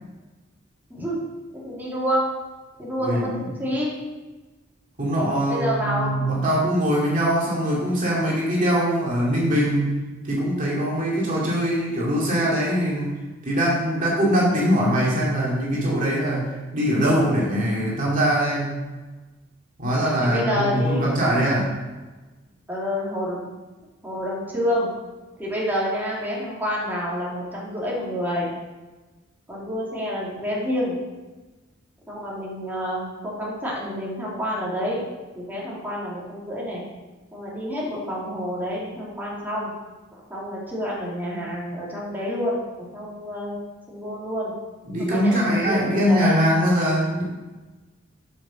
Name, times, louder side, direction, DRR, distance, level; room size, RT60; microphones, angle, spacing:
voice 1, 0.9-1.2 1.5-2.3 2.8-3.9 5.5-6.2 20.2-21.0 22.7-23.5 24.0-24.9 25.4-28.5 29.5-30.9 32.1-35.0 35.3-36.8 37.3-39.7 40.1-43.6 43.9-44.5 45.1-46.3, equal, 10° right, -6 dB, 2.6 m, -28 dB
voice 2, 3.0-3.3 5.0-10.0 10.2-18.8 19.8-21.7 44.9-47.2, equal, 45° right, -5 dB, 2.2 m, -22 dB
7.7 x 6.6 x 6.2 m, 1.2 s
head